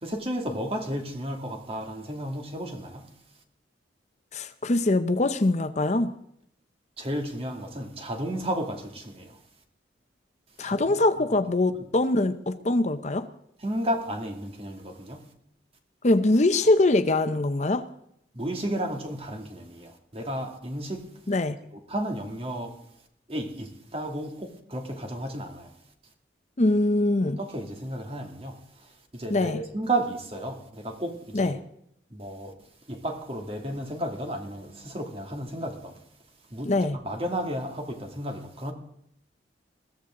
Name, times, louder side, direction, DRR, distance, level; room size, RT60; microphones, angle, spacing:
voice 1, 0.0-3.2 7.0-9.4 10.6-10.9 11.7-11.8 13.6-15.3 18.3-21.1 21.9-22.8 23.3-25.7 27.4-31.5 32.1-32.5 32.9-36.0 36.5-38.7, right 1 dB, 30° right, 2.6 m, -33 dB
voice 2, 4.3-6.2 10.6-13.3 16.0-17.9 21.3-21.6 26.6-27.4 29.3-29.6 31.3-31.6 36.6-37.0, left 2 dB, 40° left, 0.7 m, -23 dB
22.0 x 15.5 x 3.8 m
head